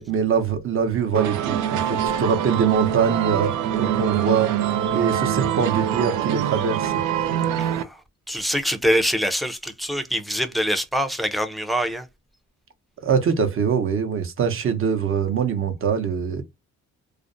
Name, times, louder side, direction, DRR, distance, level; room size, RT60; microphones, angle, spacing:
voice 1, 0.0-4.5 4.9-7.0 13.0-16.4, right 6 dB, 45° right, 0.7 m, -23 dB
sound 1, 1.1-7.8, right 9 dB, 80° right, 0.5 m, -24 dB
voice 2, 7.6-8.0 8.3-12.0, equal, ahead, 0.4 m, -24 dB
2.5 x 2.0 x 2.5 m
cardioid pair, 90°, 30 cm